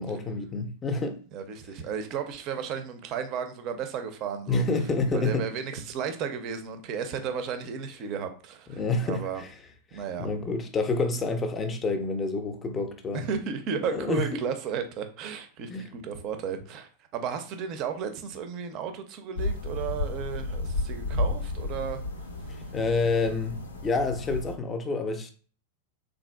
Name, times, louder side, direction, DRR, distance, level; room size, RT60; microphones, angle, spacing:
voice 1, 0.0-1.2 4.5-5.5 8.7-9.5 9.9-13.3 13.8-14.4 15.7-15.9 22.7-23.5 23.8-25.3, left 3 dB, 20° left, 0.5 m, -28 dB
voice 2, 1.3-4.6 5.1-9.4 9.9-10.3 13.1-22.0, right 7 dB, 40° right, 0.4 m, -34 dB
sound 1, 19.3-24.5, left 2 dB, 75° left, 0.5 m, -32 dB
3.5 x 2.5 x 2.2 m
figure-of-eight pair, 90°, 0 cm